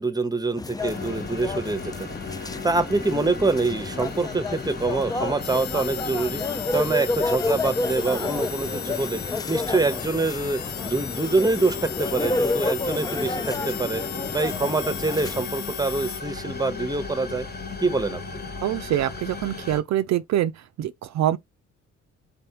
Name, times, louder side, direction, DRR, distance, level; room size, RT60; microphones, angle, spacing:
voice 1, 0.0-2.1 2.4-6.4 6.7-14.0 14.3-17.5 17.8-18.4, right 3 dB, 15° right, 0.8 m, -25 dB
sound 1, 0.6-15.4, left 3 dB, 15° left, 0.4 m, -30 dB
sound 2, 0.8-19.8, left 4 dB, 35° left, 1.2 m, -37 dB
sound 3, 5.4-16.2, left 12 dB, 70° left, 0.6 m, -36 dB
voice 2, 18.6-20.5 20.8-21.4, right 12 dB, 65° right, 0.5 m, -24 dB
4.2 x 3.4 x 2.8 m
cardioid pair, 90°, 30 cm